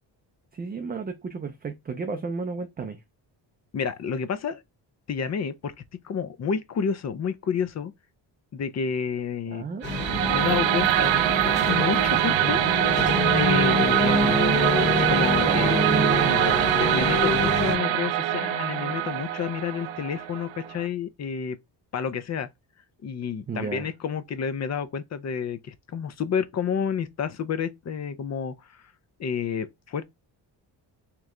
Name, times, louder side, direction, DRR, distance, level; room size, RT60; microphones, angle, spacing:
voice 1, 0.5-3.0 9.5-9.9 15.4-16.8 23.5-23.9, right 5 dB, 25° right, 0.4 m, -31 dB
voice 2, 3.7-4.6 5.1-5.7 6.0-7.9 8.5-9.6 10.3-12.6 13.3-14.4 14.9-15.8 16.7-21.6 21.9-22.5 23.0-28.8 29.2-30.0, left 7 dB, 40° left, 0.4 m, -30 dB
sound 1, 9.8-17.8, left 2 dB, 25° left, 0.9 m, -26 dB
sound 2, 9.8-20.9, right 13 dB, 80° right, 0.5 m, -24 dB
3.2 x 3.0 x 3.6 m
wide cardioid pair, 165°, 45 cm